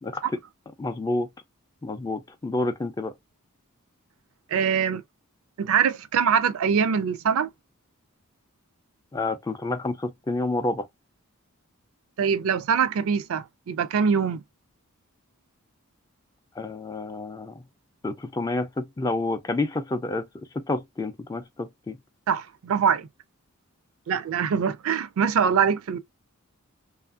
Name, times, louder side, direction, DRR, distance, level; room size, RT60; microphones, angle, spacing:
voice 1, 0.8-1.3 1.8-3.1 9.1-10.8 16.6-17.6 18.0-20.3 20.5-22.0, left 2 dB, 15° left, 0.3 m, -29 dB
voice 2, 4.5-5.0 5.6-7.5 12.2-14.4 22.3-23.1 24.1-26.0, right 7 dB, 70° right, 0.4 m, -23 dB
2.9 x 2.4 x 2.3 m
head